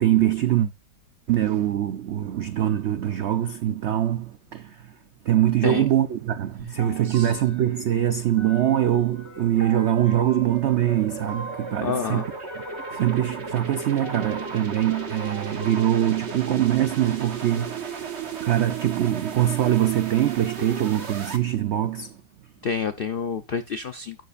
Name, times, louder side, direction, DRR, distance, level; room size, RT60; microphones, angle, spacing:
voice 1, 0.0-0.7 1.3-4.9 5.2-12.2 12.9-22.2, right 12 dB, 80° right, 0.6 m, -23 dB
sound 1, 6.6-21.4, right 4 dB, 45° right, 1.3 m, -36 dB
sound 2, 6.8-18.1, right 1 dB, 10° left, 1.3 m, -43 dB
voice 2, 11.8-12.3 22.6-24.2, left 6 dB, 80° left, 0.5 m, -28 dB
12.0 x 6.8 x 2.5 m
omnidirectional pair, 1.8 m